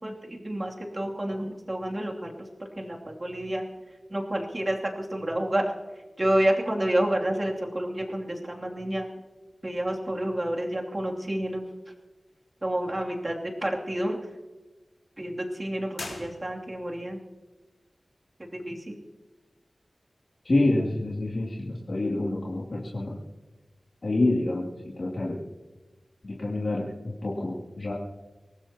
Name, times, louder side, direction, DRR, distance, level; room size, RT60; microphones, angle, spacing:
voice 1, 0.0-2.3 2.8-3.6 4.1-5.6 6.2-9.1 9.6-11.6 12.6-13.4 13.6-14.2 15.2-17.2 18.5-18.9, right 1 dB, 30° right, -1 dB, 2.9 m, -29 dB
sound 1, 15.9-17.0, left 2 dB, 75° left, 4.2 m, -41 dB
voice 2, 20.4-23.2 24.0-25.4 26.2-27.9, left 2 dB, 60° left, -5 dB, 2.8 m, -27 dB
24.0 x 19.0 x 3.0 m, 1.2 s
wide cardioid pair, 85°, 0 cm